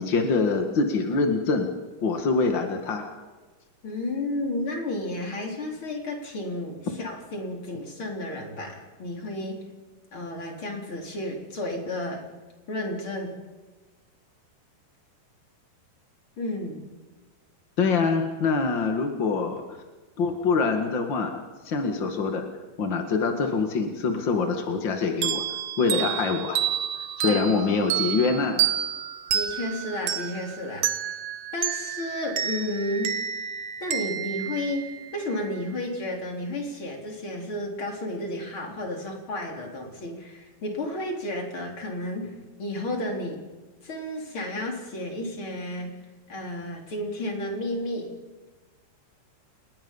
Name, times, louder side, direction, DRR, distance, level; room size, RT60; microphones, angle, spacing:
voice 1, 0.0-1.7 2.0-3.1 6.9-7.0 17.8-19.6 20.2-22.5 22.8-25.4 25.8-26.6 27.2-28.7, left 4 dB, 55° left, 4 dB, 1.3 m, -25 dB
voice 2, 3.8-9.7 10.1-12.2 12.7-13.4 16.4-16.8 27.3-27.4 29.3-31.1 31.5-33.1 33.8-42.3 42.6-43.4 43.8-46.0 46.3-48.2, left 1 dB, 30° left, 1 dB, 4.2 m, -32 dB
sound 1, 25.2-35.5, right 10 dB, 80° right, 1.6 m, -30 dB
30.0 x 20.5 x 5.6 m, 1.3 s
omnidirectional pair, 5.1 m